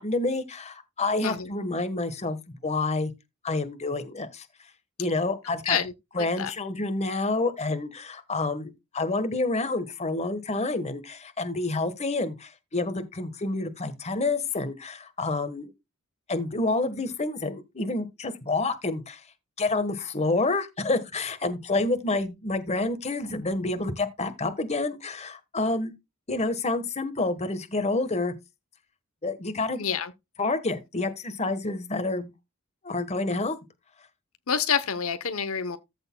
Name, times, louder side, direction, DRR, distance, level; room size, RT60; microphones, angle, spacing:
voice 1, 0.0-3.1 3.4-4.4 5.0-5.8 6.1-15.7 16.3-19.2 19.6-25.9 26.3-28.3 29.2-29.8 30.4-32.3 32.8-33.6, left 2 dB, 30° left, 1.4 m, -28 dB
voice 2, 6.2-6.5 29.8-30.1 34.5-35.8, left 7 dB, 75° left, 0.9 m, -27 dB
14.5 x 6.5 x 2.3 m
head